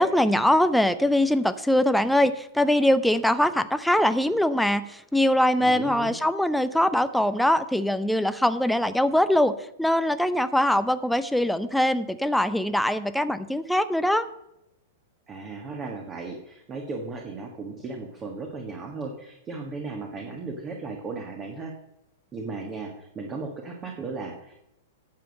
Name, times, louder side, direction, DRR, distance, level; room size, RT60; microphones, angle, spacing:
voice 1, 0.0-9.5 9.8-14.3, left 1 dB, ahead, 12 dB, 0.6 m, -22 dB
voice 2, 5.6-6.1 15.3-21.7 22.3-24.6, right 3 dB, 25° right, 2 dB, 1.7 m, -36 dB
10.0 x 7.0 x 6.5 m, 0.82 s
figure-of-eight pair, 100°, 0 cm